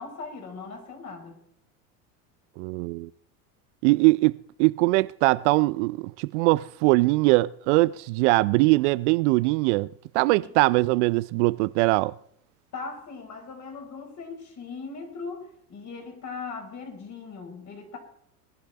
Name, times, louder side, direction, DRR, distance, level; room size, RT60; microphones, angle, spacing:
voice 1, 0.0-1.4 10.4-10.5 12.7-18.0, left 4 dB, 35° left, 5.1 m, -39 dB
voice 2, 2.6-3.1 3.8-9.9 10.1-12.1, right 22 dB, 50° right, 0.5 m, -22 dB
20.0 x 11.5 x 4.2 m
hypercardioid pair, 85°, 46 cm